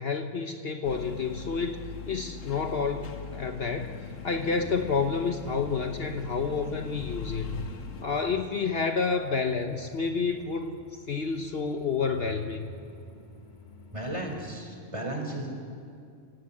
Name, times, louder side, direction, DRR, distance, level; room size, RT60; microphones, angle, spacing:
voice 1, 0.0-7.6 8.0-10.8 11.1-12.7, left 5 dB, 55° left, 6 dB, 1.2 m, -29 dB
sound 1, 0.8-8.1, left 5 dB, 85° left, 1.7 m, -41 dB
sound 2, 3.8-14.6, equal, 40° left, 1.7 m, -50 dB
voice 2, 13.9-15.5, right 1 dB, 25° right, 2 dB, 4.3 m, -34 dB
29.5 x 17.0 x 8.5 m, 2.4 s
omnidirectional pair, 1.3 m